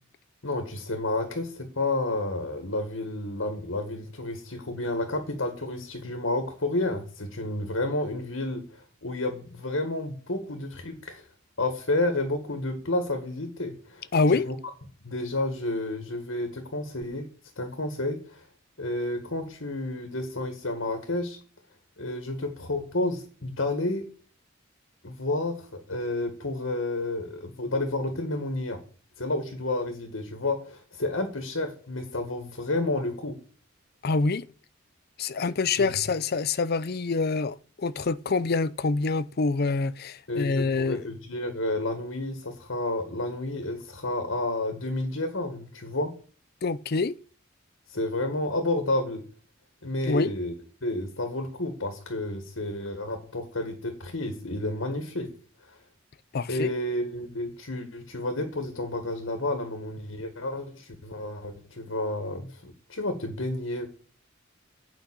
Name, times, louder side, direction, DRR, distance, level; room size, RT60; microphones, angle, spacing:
voice 1, 0.4-11.2 11.6-14.5 15.0-17.3 17.6-18.4 18.8-21.4 22.0-24.1 25.0-28.8 29.2-33.4 35.8-36.0 40.3-46.1 47.9-49.2 49.8-50.5 50.8-55.3 55.7-55.8 56.5-63.9, left 2 dB, 75° left, 1.9 m, -30 dB
voice 2, 14.1-14.5 34.0-34.5 35.2-41.1 46.6-47.2 50.1-50.3 56.3-56.7, left 4 dB, 50° left, 0.6 m, -26 dB
8.8 x 5.9 x 8.2 m
head